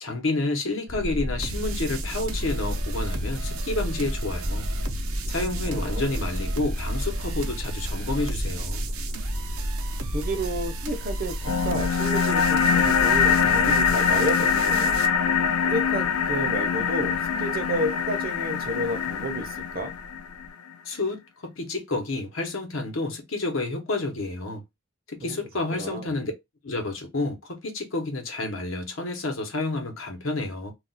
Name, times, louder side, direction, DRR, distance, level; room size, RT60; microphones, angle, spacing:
voice 1, 0.0-4.7 5.3-8.8 20.8-24.6 25.1-26.3 26.6-30.7, left 2 dB, 65° left, 0.9 m, -30 dB
sound 1, 0.9-20.5, equal, ahead, 0.6 m, -34 dB
sound 2, 1.4-15.1, right 2 dB, 80° right, 0.6 m, -35 dB
voice 2, 5.6-6.2 10.1-14.9 15.6-19.9 25.2-25.4 25.7-26.1, right 1 dB, 40° right, 0.7 m, -31 dB
sound 3, 11.4-20.5, left 7 dB, 80° left, 0.4 m, -23 dB
2.4 x 2.2 x 3.9 m
head